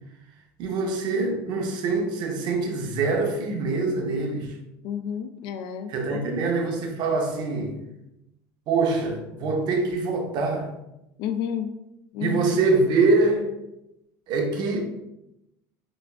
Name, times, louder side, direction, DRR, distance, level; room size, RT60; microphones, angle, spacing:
voice 1, 0.6-4.6 5.9-7.8 8.7-10.7 12.2-13.5 14.3-14.8, right 3 dB, 55° right, 2 dB, 0.7 m, -24 dB
voice 2, 4.8-6.3 11.2-11.7 12.1-12.6, left 8 dB, 60° left, 8 dB, 0.4 m, -31 dB
6.0 x 2.3 x 2.3 m, 0.87 s
supercardioid pair, 115°, 9 cm